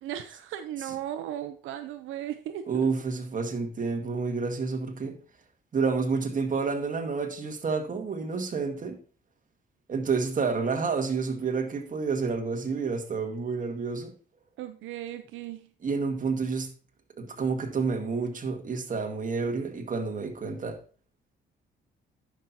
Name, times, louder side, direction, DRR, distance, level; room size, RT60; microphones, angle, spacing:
voice 1, 0.0-2.9 14.6-15.7, right 11 dB, 85° right, 0.6 m, -36 dB
voice 2, 2.7-5.2 5.7-9.0 9.9-14.1 15.8-16.7 17.2-20.8, right 4 dB, 40° right, 1.8 m, -29 dB
11.0 x 6.0 x 2.8 m
cardioid pair, 90°, 20 cm